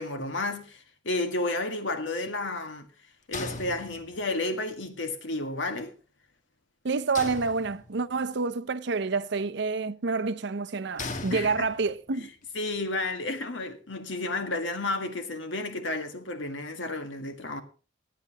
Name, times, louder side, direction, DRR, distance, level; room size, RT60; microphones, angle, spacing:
voice 1, 0.0-2.9 3.3-5.9 11.3-11.7 12.1-12.3 12.5-17.6, left 2 dB, 75° left, 1.8 m, -32 dB
sound 1, 3.3-4.4 7.1-8.2 11.0-12.1, left 3 dB, 40° left, 1.2 m, -38 dB
voice 2, 6.8-12.3, right 4 dB, 65° right, 0.7 m, -28 dB
18.0 x 10.5 x 2.9 m
head